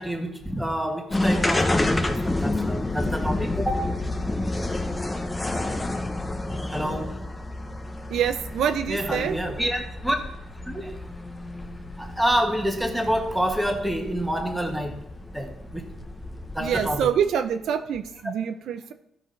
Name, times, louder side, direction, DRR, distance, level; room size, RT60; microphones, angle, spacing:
voice 1, 0.0-3.9 6.7-7.1 8.9-10.2 10.6-11.0 12.0-15.0 15.3-15.8 16.5-17.1, equal, 5° right, 3 dB, 1.6 m, -27 dB
sound 1, 1.1-17.3, left 2 dB, 15° left, 1.0 m, -29 dB
voice 2, 8.1-9.4 16.6-18.9, right 8 dB, 75° right, 8 dB, 0.6 m, -26 dB
14.5 x 4.9 x 4.0 m, 0.77 s
cardioid pair, 90°, 0 cm